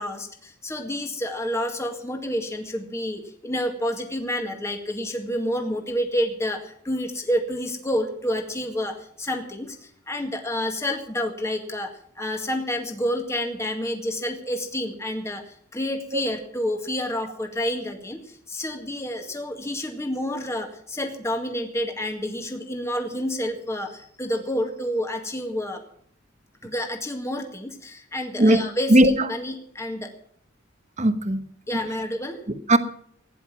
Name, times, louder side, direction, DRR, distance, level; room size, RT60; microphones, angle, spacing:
voice 1, 0.0-25.8 26.6-30.1 31.7-32.4, equal, 15° left, 4 dB, 2.0 m, -29 dB
voice 2, 28.9-29.3 31.0-31.4 31.7-31.8 32.5-32.8, right 1 dB, 35° right, 10 dB, 1.3 m, -18 dB
17.0 x 10.5 x 6.0 m, 0.65 s
head